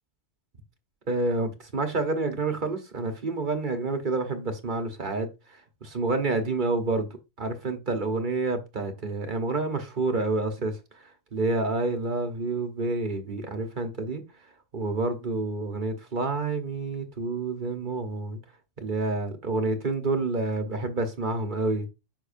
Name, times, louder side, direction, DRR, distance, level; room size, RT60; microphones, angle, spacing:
voice 1, 1.1-5.3 5.8-7.1 7.4-10.8 11.3-14.2 14.7-18.4 18.8-21.9, right 3 dB, 40° right, 1.2 m, -28 dB
6.8 x 5.8 x 2.6 m
omnidirectional pair, 1.3 m